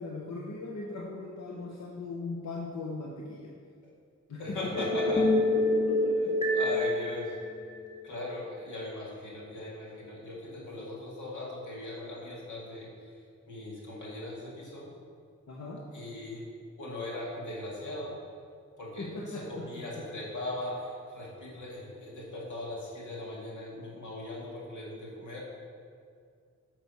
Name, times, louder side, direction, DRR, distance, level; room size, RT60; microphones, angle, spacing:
voice 1, 0.0-3.5 4.3-5.2 5.7-6.3 10.6-10.7 15.5-15.8 19.0-20.0, left 3 dB, 65° left, -2 dB, 1.0 m, -39 dB
voice 2, 4.4-5.2 6.5-7.4 8.0-13.1 13.5-14.9 15.9-16.5 16.8-18.1 18.8-25.4, left 2 dB, 85° left, -4 dB, 2.0 m, -39 dB
sound 1, 4.7-8.1, left 1 dB, 20° left, 1.8 m, -27 dB
6.3 x 6.0 x 5.4 m, 2.2 s
cardioid pair, 65°, 29 cm